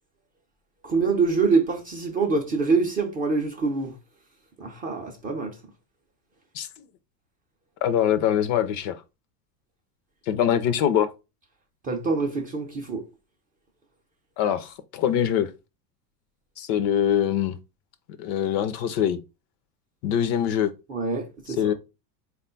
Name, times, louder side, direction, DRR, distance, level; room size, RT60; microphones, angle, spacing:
voice 1, 0.8-3.9 4.6-5.5 11.8-13.0 20.9-21.7, right 4 dB, 20° right, 0.4 m, -25 dB
voice 2, 7.8-9.0 10.3-11.1 14.4-15.5 16.6-17.6 18.2-19.2 20.0-20.7 21.5-21.7, left 9 dB, 45° left, 0.4 m, -23 dB
3.7 x 2.3 x 3.7 m
hypercardioid pair, 105°, 50 cm